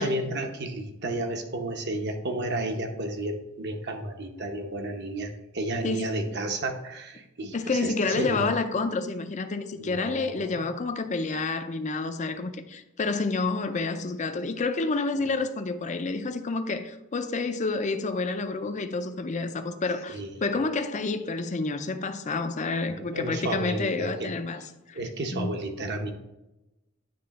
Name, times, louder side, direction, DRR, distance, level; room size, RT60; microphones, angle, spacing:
voice 1, 0.0-8.6 9.8-10.6 15.2-15.3 20.1-20.4 22.8-24.3 24.9-26.1, right 2 dB, 50° right, 0.8 m, -32 dB
voice 2, 5.8-6.2 7.5-24.6 24.9-25.0 25.3-25.6, left 3 dB, 35° left, 0.5 m, -29 dB
9.5 x 3.4 x 4.1 m
head